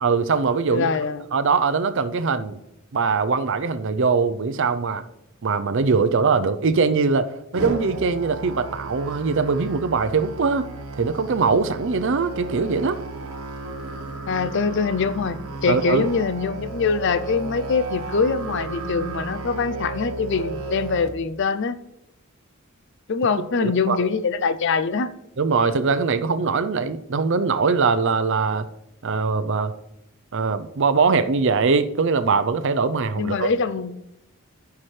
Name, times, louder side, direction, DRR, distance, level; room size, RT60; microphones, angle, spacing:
voice 1, 0.0-0.9 1.3-2.6 2.9-5.0 5.4-10.7 11.0-13.0 15.7-16.0 23.6-24.1 25.4-28.7 29.0-29.7 30.3-33.5, right 4 dB, 60° right, 11 dB, 0.5 m, -22 dB
voice 2, 0.7-1.2 14.3-21.8 23.1-25.1 33.2-33.9, left 5 dB, 55° left, 13 dB, 0.5 m, -23 dB
Musical instrument, 7.5-21.1, right 3 dB, 80° right, 1.1 m, -34 dB
14.0 x 5.8 x 3.3 m, 0.86 s
head